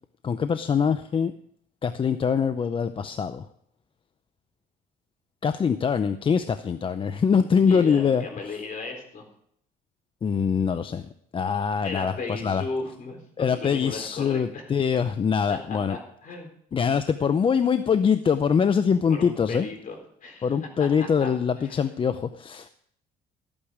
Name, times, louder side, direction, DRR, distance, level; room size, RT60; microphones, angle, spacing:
voice 1, 0.2-1.3 1.8-3.5 5.4-8.3 10.2-11.0 11.3-12.6 13.4-16.0 16.7-19.7 20.4-22.7, left 6 dB, 30° left, 11 dB, 0.6 m, -23 dB
voice 2, 7.6-9.3 11.8-13.2 13.5-14.7 15.5-16.5 19.1-21.3 21.6-21.8, left 3 dB, 50° left, 3 dB, 3.9 m, -36 dB
13.5 x 8.8 x 4.9 m, 0.67 s
cardioid pair, 110°, 17 cm